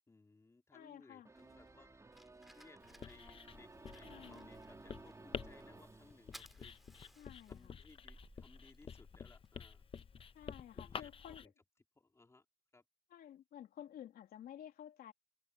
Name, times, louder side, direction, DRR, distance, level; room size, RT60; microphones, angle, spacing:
voice 1, 0.1-6.8 7.5-9.8 10.7-11.5 11.9-12.4 12.7-12.8, left 3 dB, 15° left, 3.4 m, -63 dB
voice 2, 0.7-1.3 4.0-4.5 7.2-7.8 10.3-11.5 13.1-15.1, left 10 dB, 65° left, 2.8 m, -53 dB
sound 1, 1.2-6.9, right 3 dB, 15° right, 4.1 m, -57 dB
Fire, 1.4-11.0, equal, ahead, 4.9 m, -64 dB
Writing, 2.8-11.5, left 6 dB, 30° left, 1.0 m, -50 dB
cardioid pair, 110°, 17 cm